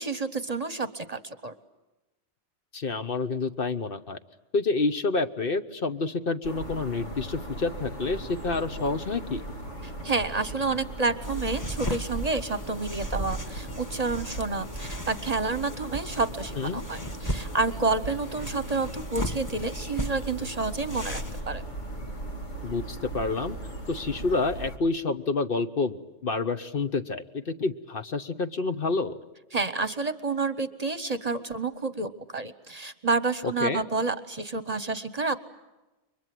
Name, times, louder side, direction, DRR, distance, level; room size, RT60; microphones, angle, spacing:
voice 1, 0.0-1.5 9.8-21.6 29.5-35.4, right 3 dB, 35° right, 13 dB, 1.0 m, -29 dB
voice 2, 2.7-4.2 4.5-9.4 16.5-16.8 22.6-23.6 23.9-29.2 33.4-33.8, left 3 dB, 50° left, 9 dB, 1.2 m, -28 dB
sound 1, 6.4-24.8, right 1 dB, 80° left, 2.5 m, -39 dB
sound 2, 11.2-21.4, equal, 15° left, 1.2 m, -36 dB
30.0 x 23.5 x 7.7 m, 1.1 s
omnidirectional pair, 1.2 m